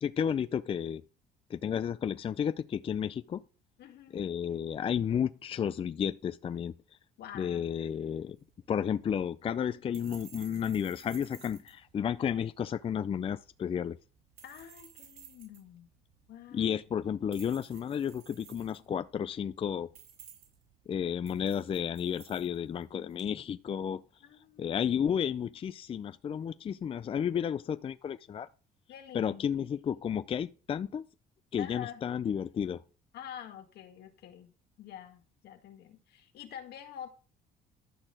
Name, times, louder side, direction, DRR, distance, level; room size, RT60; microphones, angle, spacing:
voice 1, 0.0-1.0 1.5-3.4 4.1-6.7 7.3-8.4 8.7-14.0 16.5-19.9 20.9-24.0 24.6-28.5 29.1-31.0 31.5-32.8, left 8 dB, 35° left, 0.4 m, -32 dB
voice 2, 3.8-4.2 7.2-7.7 14.4-15.9 16.3-16.8 24.2-25.0 28.9-29.5 31.6-32.0 33.1-37.1, left 10 dB, 70° left, 2.0 m, -47 dB
sound 1, 8.3-23.4, right 8 dB, 70° right, 4.7 m, -57 dB
12.0 x 4.3 x 7.7 m
cardioid pair, 110°, 17 cm